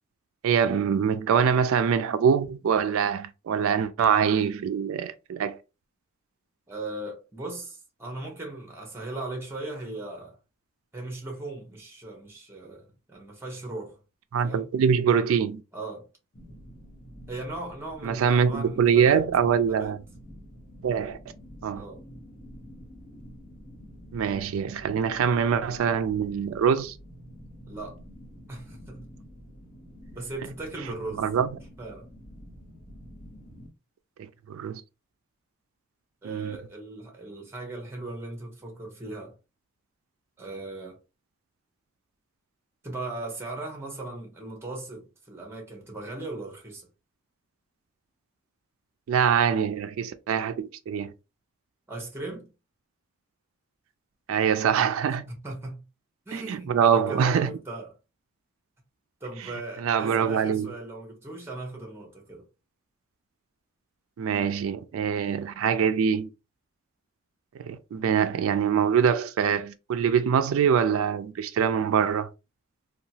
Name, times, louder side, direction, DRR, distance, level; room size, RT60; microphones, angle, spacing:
voice 1, 0.4-5.6 14.3-15.6 18.0-20.0 20.8-21.2 21.6-21.8 24.1-27.0 31.2-31.5 34.2-34.8 36.2-36.6 49.1-51.1 54.3-55.3 56.3-57.5 59.4-59.5 59.8-60.7 64.2-66.3 67.6-72.3, right 7 dB, 75° right, 0.3 m, -24 dB
voice 2, 6.7-10.4 10.9-14.0 14.4-14.6 15.7-16.1 17.3-19.2 19.6-20.0 21.7-22.0 27.7-28.0 28.5-29.0 30.1-31.3 31.8-32.1 36.2-39.4 40.4-41.0 42.8-46.9 51.9-52.5 55.3-55.8 56.3-57.9 59.2-62.5, right 2 dB, 10° right, 0.8 m, -38 dB
sound 1, 16.3-33.7, equal, 40° left, 1.0 m, -48 dB
2.8 x 2.3 x 2.7 m
head